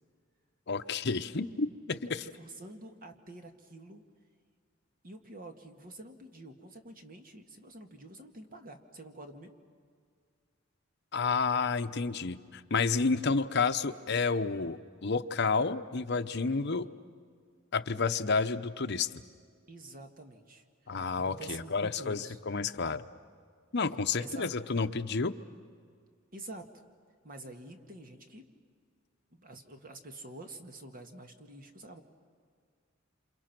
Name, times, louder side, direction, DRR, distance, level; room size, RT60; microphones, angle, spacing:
voice 1, 0.7-1.7 2.1-2.2 11.1-16.9 17.7-19.1 20.9-23.0 23.7-25.3, left 4 dB, 55° left, 9 dB, 0.9 m, -30 dB
voice 2, 1.9-4.0 5.0-9.6 19.7-22.4 24.2-24.5 26.3-26.7 27.2-28.5 29.3-32.0, right 2 dB, 45° right, 5 dB, 1.9 m, -48 dB
28.0 x 28.0 x 6.1 m, 2.1 s
head